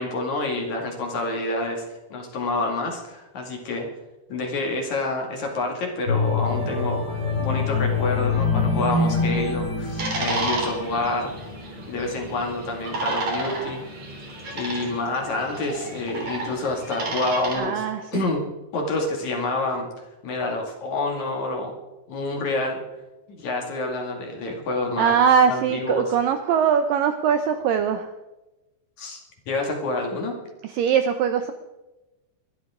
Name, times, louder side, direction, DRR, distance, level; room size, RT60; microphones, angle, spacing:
voice 1, 0.0-3.9 4.3-11.3 11.9-13.8 14.5-17.9 18.1-19.9 20.2-21.7 22.1-22.8 23.3-25.1 25.5-26.1 29.0-29.2 29.5-30.4, left 2 dB, 50° left, 1 dB, 3.2 m, -28 dB
sound 1, 6.1-11.3 11.8-12.0, left 4 dB, 25° left, 5.3 m, -25 dB
sound 2, 10.0-17.5, right 2 dB, 45° right, 4.2 m, -32 dB
voice 2, 17.5-18.2 25.0-28.1 30.7-31.5, right 7 dB, 80° right, 8 dB, 2.0 m, -21 dB
22.5 x 12.5 x 3.7 m, 1.0 s
omnidirectional pair, 4.7 m